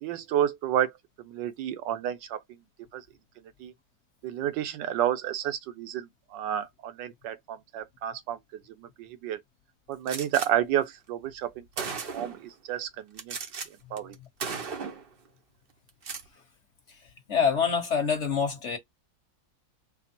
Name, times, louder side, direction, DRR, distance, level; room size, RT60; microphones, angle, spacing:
voice 1, 0.0-0.9 1.2-2.4 2.9-3.0 3.6-3.7 4.2-8.4 8.8-9.4 9.9-13.6 13.9-14.2, right 11 dB, 80° right, 1.3 m, -31 dB
Gunshot gunfire, 10.1-10.5 11.3-11.4 11.8-12.4 13.2-13.7 14.0-14.1 14.4-15.1 15.9-16.3, right 5 dB, 55° right, 0.6 m, -35 dB
voice 2, 17.3-18.8, left 6 dB, 45° left, 1.1 m, -25 dB
4.1 x 2.0 x 4.2 m
omnidirectional pair, 1.9 m